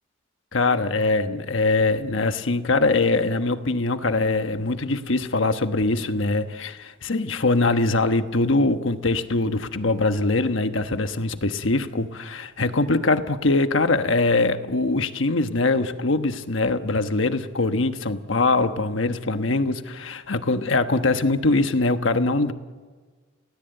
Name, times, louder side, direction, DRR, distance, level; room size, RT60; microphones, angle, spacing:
voice 1, 0.5-22.5, left 3 dB, 75° left, 8 dB, 1.2 m, -22 dB
29.5 x 18.0 x 8.0 m, 1.5 s
head